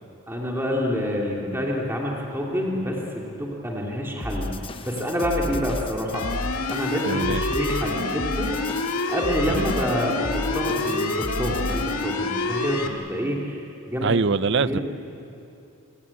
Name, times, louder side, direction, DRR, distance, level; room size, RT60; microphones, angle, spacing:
voice 1, 0.3-4.5 4.8-6.3 6.7-8.5 9.1-13.6 13.9-14.2 14.5-14.8, equal, 10° right, -2 dB, 3.0 m, -27 dB
sound 1, 4.2-12.1, left 1 dB, 25° left, 0.8 m, -33 dB
sound 2, 6.1-12.9, left 3 dB, 80° left, 2.1 m, -27 dB
voice 2, 7.1-7.4 9.5-9.7 14.0-14.8, right 4 dB, 55° right, 16 dB, 0.6 m, -23 dB
26.0 x 25.0 x 8.6 m, 2.7 s
head